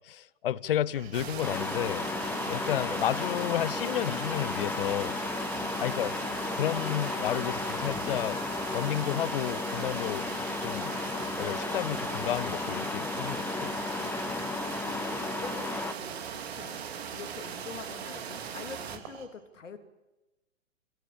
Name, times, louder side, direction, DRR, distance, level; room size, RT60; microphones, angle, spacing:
voice 1, 0.1-2.1 2.5-5.2 5.8-6.1 6.5-8.4 8.7-10.3 10.6-10.9 11.4-13.7, left 11 dB, 45° left, 0.9 m, -31 dB
Cricket, 0.9-19.2, right 8 dB, 35° right, 5.6 m, -54 dB
sound 1, 1.1-19.0, right 7 dB, 50° right, 2.9 m, -39 dB
sound 2, 1.4-15.9, left 4 dB, 5° left, 0.9 m, -34 dB
voice 2, 2.6-3.0 14.3-16.8 17.1-19.8, left 5 dB, 70° left, 3.1 m, -45 dB
27.0 x 20.0 x 8.5 m
figure-of-eight pair, 115°, 39 cm